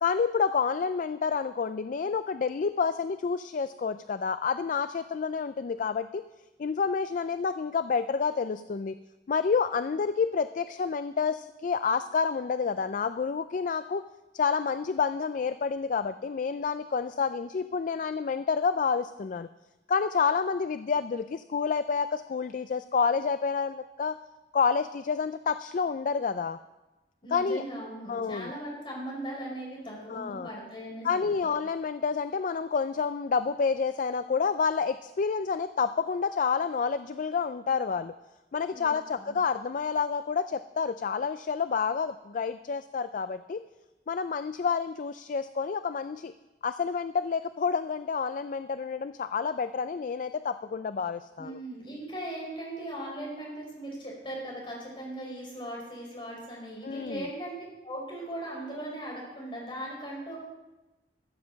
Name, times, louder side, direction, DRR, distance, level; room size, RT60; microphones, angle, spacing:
voice 1, 0.0-6.2 6.6-9.0 9.3-14.0 14.3-19.5 19.9-24.2 24.5-26.6 27.3-27.6 28.1-28.5 30.1-30.5 31.0-38.1 38.5-43.6 44.1-46.3 46.6-51.6 56.8-57.2, left 5 dB, 50° left, 12 dB, 0.4 m, -29 dB
voice 2, 27.2-31.5 38.7-39.3 51.4-57.6 57.8-60.4, right 1 dB, 30° left, -4 dB, 5.5 m, -39 dB
14.0 x 7.5 x 6.9 m, 1.1 s
head